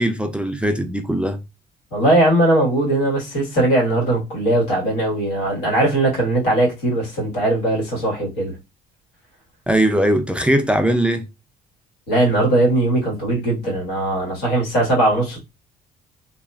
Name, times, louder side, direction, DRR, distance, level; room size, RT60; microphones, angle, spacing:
voice 1, 0.0-1.4 9.7-11.3, right 1 dB, 5° right, 0.3 m, -19 dB
voice 2, 1.9-8.5 12.1-15.4, right 1 dB, 90° left, 1.5 m, -19 dB
2.8 x 2.4 x 2.3 m
cardioid pair, 110°, 17 cm